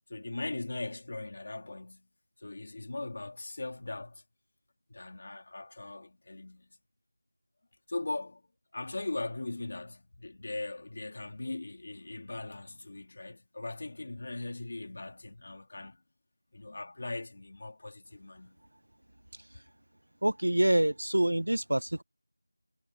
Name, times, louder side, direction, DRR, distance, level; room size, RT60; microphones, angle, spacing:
voice 1, 0.1-2.1 2.4-4.2 4.9-6.7 7.9-8.4 8.7-16.0 16.5-18.6, left 2 dB, 30° left, 3.4 m, -39 dB
voice 2, 20.2-22.0, right 1 dB, 80° right, 0.8 m, -26 dB
figure-of-eight pair, 180°, 0 cm